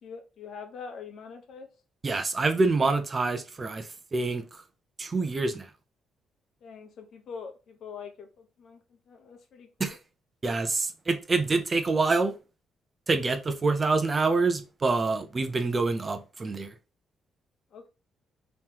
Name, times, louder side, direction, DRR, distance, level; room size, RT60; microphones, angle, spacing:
voice 1, 0.0-1.7 6.6-8.8 9.1-10.0 17.7-17.9, left 6 dB, 65° left, 0.8 m, -44 dB
voice 2, 2.0-4.6 5.0-5.7 9.8-10.0 10.4-12.3 13.1-16.7, right 3 dB, 30° right, 0.6 m, -26 dB
3.6 x 3.1 x 2.9 m
cardioid pair, 90°, 0 cm